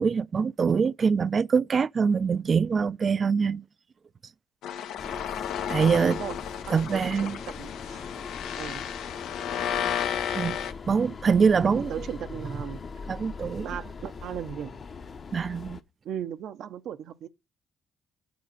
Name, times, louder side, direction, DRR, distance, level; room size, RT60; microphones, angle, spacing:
voice 1, 0.0-3.6 5.7-6.2 6.7-7.4 10.3-10.6 10.9-11.9 13.1-13.7 15.3-15.8, right 5 dB, 40° right, 0.4 m, -24 dB
sound 1, 4.6-10.7, left 9 dB, 85° left, 0.9 m, -33 dB
sound 2, 5.0-15.8, left 5 dB, 45° left, 1.0 m, -41 dB
voice 2, 5.8-6.4 6.6-8.1 8.6-8.8 11.6-12.8 13.6-14.8 16.0-17.3, right 9 dB, 75° right, 0.8 m, -37 dB
9.5 x 5.3 x 6.6 m
cardioid pair, 90°, 0 cm